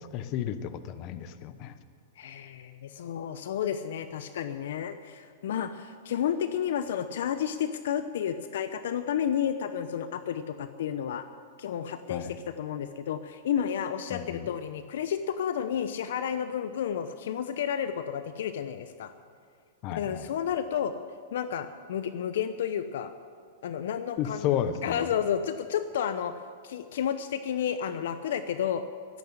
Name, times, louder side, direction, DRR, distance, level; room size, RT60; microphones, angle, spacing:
voice 1, 0.1-1.7 12.1-12.4 14.1-14.5 19.8-20.3 24.2-25.1, left 10 dB, 45° left, 12 dB, 1.0 m, -32 dB
voice 2, 2.2-11.2 11.6-19.1 20.0-20.9 21.3-23.1 23.6-24.5 24.8-26.3 26.6-28.8, left 9 dB, 70° left, 11 dB, 0.7 m, -31 dB
13.5 x 11.5 x 8.0 m, 2.1 s
hypercardioid pair, 120°, 0 cm